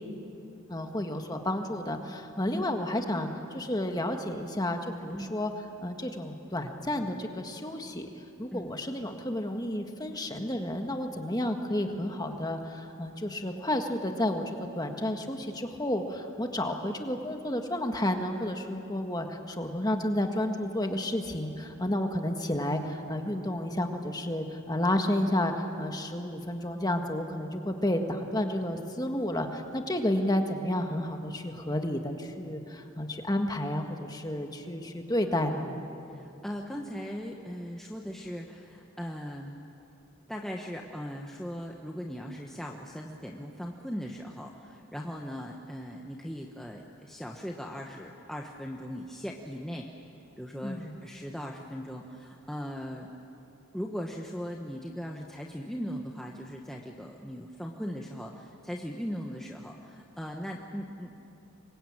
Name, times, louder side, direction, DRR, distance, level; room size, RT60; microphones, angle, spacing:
voice 1, 0.7-5.5 5.8-8.1 8.4-35.8 50.6-50.9, left 1 dB, 15° left, 4 dB, 1.7 m, -31 dB
voice 2, 36.1-39.6 40.3-49.9 50.4-53.1 53.7-61.3, equal, ahead, 0 dB, 1.1 m, -39 dB
26.5 x 23.0 x 8.9 m, 2.8 s
head